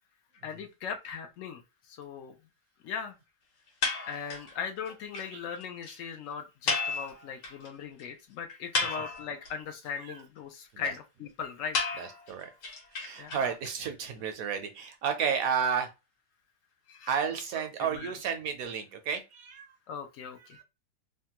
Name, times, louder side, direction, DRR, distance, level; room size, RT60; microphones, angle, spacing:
voice 1, 0.4-1.6 1.9-2.3 2.8-3.2 4.1-11.8 13.2-13.4 16.9-17.2 17.9-18.1 19.9-20.6, left 6 dB, 85° left, 0.7 m, -39 dB
sound 1, 3.8-4.5 4.9-5.0 5.1-5.3 5.6-5.7 5.8-6.0 6.7-7.7 8.0-8.1 8.5-9.5 11.7-13.7, left 4 dB, 65° left, 1.4 m, -32 dB
voice 2, 8.8-9.1 10.0-10.2 10.7-10.9 12.0-12.5 12.9-15.9 17.1-19.7 20.4-20.6, right 7 dB, 70° right, 0.9 m, -32 dB
3.3 x 2.1 x 2.8 m
omnidirectional pair, 1.9 m